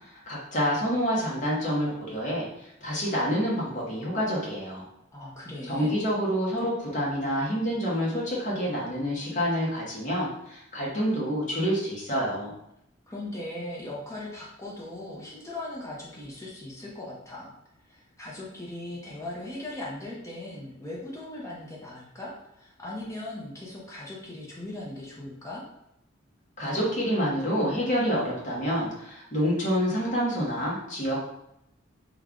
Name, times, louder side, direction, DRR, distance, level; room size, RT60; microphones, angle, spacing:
voice 1, 0.3-4.9 5.7-12.5 26.6-31.2, equal, 40° left, -5 dB, 1.1 m, -27 dB
voice 2, 5.1-5.9 13.1-17.5 17.9-25.6, left 1 dB, 15° left, -5 dB, 0.7 m, -39 dB
3.2 x 2.3 x 3.7 m, 0.79 s
head